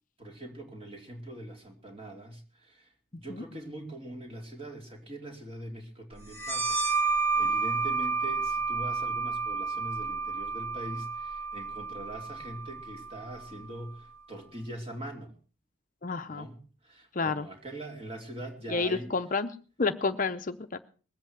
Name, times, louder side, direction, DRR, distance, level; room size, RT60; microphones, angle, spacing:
voice 1, 0.2-15.3 16.3-19.1, right 1 dB, 25° right, 3 dB, 2.6 m, -42 dB
sound 1, 6.3-13.6, right 4 dB, 50° right, 4.1 m, -31 dB
voice 2, 16.0-16.5 17.1-17.5 18.7-19.5 19.8-20.8, left 4 dB, 40° left, 8 dB, 0.6 m, -30 dB
20.5 x 8.3 x 6.1 m, 0.39 s
head